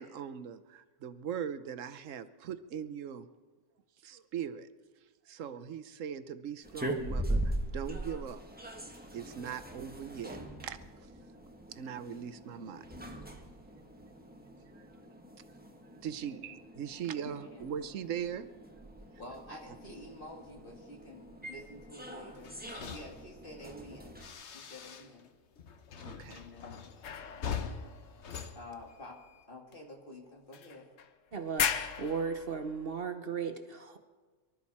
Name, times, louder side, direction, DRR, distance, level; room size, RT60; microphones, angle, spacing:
voice 1, 0.0-3.3 4.0-4.7 5.3-8.4 9.1-10.4 10.6-10.8 11.7-12.9 14.8-14.9 16.0-18.5 26.0-26.4, right 8 dB, 90° right, 11 dB, 1.2 m, -40 dB
sound 1, 6.6-24.3, right 1 dB, 10° right, 1.4 m, -41 dB
voice 2, 17.1-17.7 19.2-22.6 22.9-24.2 24.5-25.3 26.3-26.9 27.3-28.0 28.6-29.2 29.5-30.9, left 1 dB, 45° left, 0 dB, 2.7 m, -49 dB
sound 2, 22.4-25.3 25.6-29.4, left 7 dB, 65° left, 1.2 m, -43 dB
sound 3, 27.0-29.0 29.7-29.8 30.5-31.1 31.5-33.0, left 8 dB, 90° left, 1.2 m, -37 dB
voice 3, 31.3-34.0, right 5 dB, 50° right, 7 dB, 1.1 m, -36 dB
24.0 x 12.5 x 4.3 m, 1.4 s
omnidirectional pair, 1.3 m